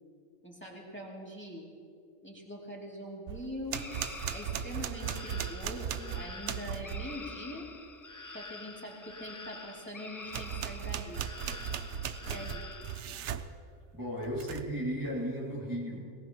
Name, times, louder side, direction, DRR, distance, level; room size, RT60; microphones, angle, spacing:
voice 1, 0.4-1.7 2.2-3.9 4.3-7.7 8.2-11.2 12.3-12.6, equal, 10° left, -4 dB, 2.5 m, -43 dB
sound 1, 3.3-7.2 10.3-13.5 14.2-14.8, right 8 dB, 70° right, 0.9 m, -37 dB
sound 2, 3.7-13.0, left 3 dB, 30° left, 0.4 m, -47 dB
voice 2, 13.9-16.1, equal, 15° right, -6 dB, 2.1 m, -35 dB
21.5 x 18.5 x 3.0 m, 2.3 s
omnidirectional pair, 1.3 m